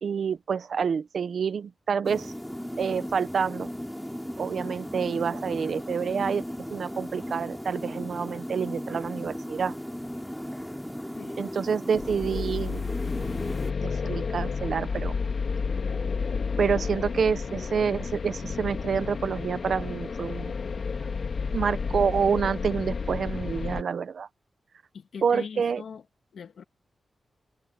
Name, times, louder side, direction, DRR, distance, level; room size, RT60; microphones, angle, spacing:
voice 1, 0.0-2.3 2.8-3.7 4.4-6.4 6.7-9.8 11.4-12.8 13.8-15.1 16.6-20.5 21.5-24.3 25.2-25.8, right 6 dB, 70° right, 0.9 m, -28 dB
sound 1, 2.0-13.7, equal, 5° left, 3.0 m, -36 dB
voice 2, 11.1-11.5 24.9-26.0 26.3-26.6, left 6 dB, 75° left, 2.2 m, -41 dB
sound 2, 12.0-23.8, left 5 dB, 55° left, 1.7 m, -31 dB
wide cardioid pair, 135°, 0 cm